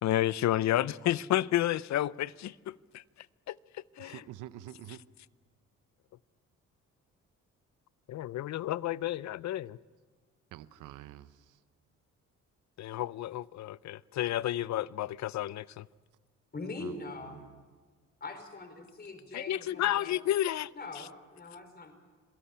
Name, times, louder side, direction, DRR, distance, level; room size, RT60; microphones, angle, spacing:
voice 1, 0.0-3.0 3.5-4.2 8.1-9.8 12.8-15.9 19.3-20.7 21.0-21.1, left 13 dB, 65° left, 0.6 m, -31 dB
voice 2, 4.0-5.0 10.5-11.6 16.8-17.6, right 13 dB, 90° right, 0.8 m, -48 dB
voice 3, 16.5-17.4 18.2-20.2 20.7-21.9, left 3 dB, 30° left, 4.6 m, -42 dB
26.5 x 17.0 x 8.5 m
cardioid pair, 90°, 30 cm